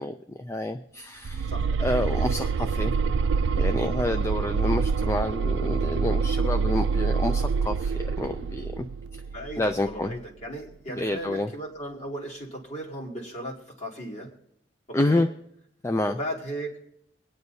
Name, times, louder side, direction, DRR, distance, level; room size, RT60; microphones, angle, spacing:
voice 1, 0.0-1.5 1.8-3.0 3.5-8.9 9.1-9.2 9.6-10.2 10.9-11.5 14.9-15.3 15.8-16.2, left 1 dB, 15° left, 8 dB, 0.3 m, -28 dB
sound 1, 1.2-10.1, right 5 dB, 75° right, 0.4 m, -26 dB
voice 2, 9.3-14.3 14.9-15.2 16.0-16.8, right 1 dB, 40° left, -3 dB, 2.5 m, -36 dB
24.5 x 9.5 x 2.7 m, 0.76 s
head